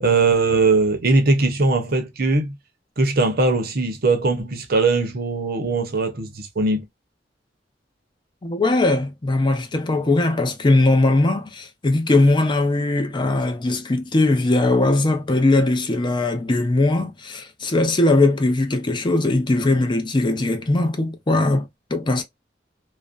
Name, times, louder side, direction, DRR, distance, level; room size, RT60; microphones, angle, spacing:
voice 1, 0.0-2.5 3.0-6.8, right 3 dB, 55° right, 0.7 m, -20 dB
voice 2, 8.4-22.2, left 2 dB, 25° left, 0.5 m, -20 dB
2.5 x 2.1 x 2.3 m
head